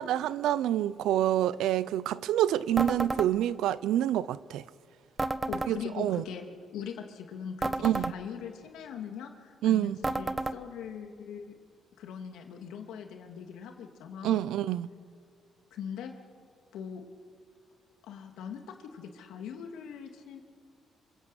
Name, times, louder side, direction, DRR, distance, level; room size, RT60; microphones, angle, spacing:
voice 1, 0.0-4.6 5.7-6.2 7.8-8.1 9.6-10.0 14.2-14.9, right 12 dB, 85° right, 0.7 m, -27 dB
sound 1, 2.8-3.3 5.2-5.7 7.6-8.2 10.0-10.6, right 2 dB, 20° right, 1.1 m, -31 dB
voice 2, 5.5-6.4 6.7-11.5 12.0-14.4 15.7-16.1 16.7-17.0 18.1-20.4, left 7 dB, 85° left, 2.9 m, -41 dB
26.5 x 26.0 x 8.4 m
cardioid pair, 90°, 0 cm